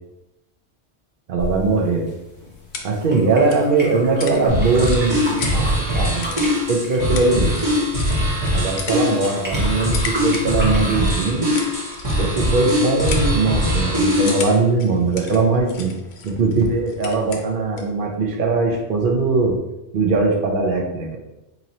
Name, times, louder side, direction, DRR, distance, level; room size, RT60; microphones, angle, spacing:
voice 1, 1.3-2.1 2.8-6.4 6.7-7.6 8.5-11.5 12.2-15.9 16.2-19.6 19.9-21.2, right 3 dB, 55° right, 1 dB, 0.8 m, -20 dB
sound 1, 1.4-11.0, equal, 10° right, 0.8 m, -35 dB
sound 2, 2.1-18.0, left 5 dB, 75° left, 0.8 m, -37 dB
sound 3, 4.5-14.6, equal, 35° right, 1.1 m, -21 dB
3.0 x 2.9 x 3.9 m, 0.92 s
omnidirectional pair, 1.1 m